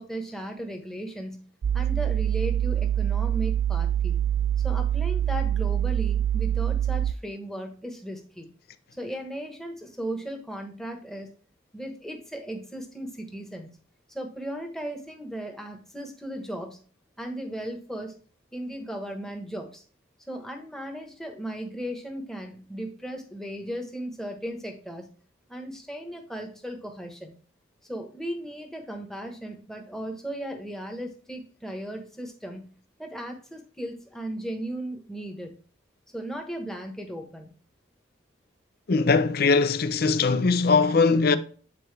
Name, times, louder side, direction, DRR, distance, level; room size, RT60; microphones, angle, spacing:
voice 1, 0.0-1.4 1.7-4.2 4.6-8.5 9.0-11.3 11.7-13.7 14.1-16.8 17.2-18.1 18.5-19.8 20.3-25.1 25.5-27.3 27.8-32.7 33.0-35.5 36.1-37.5, right 1 dB, ahead, 1.1 m, -36 dB
sound 1, 1.6-7.1, right 10 dB, 70° right, 0.3 m, -25 dB
voice 2, 38.9-41.4, left 4 dB, 50° left, 0.5 m, -21 dB
8.6 x 4.4 x 3.3 m
head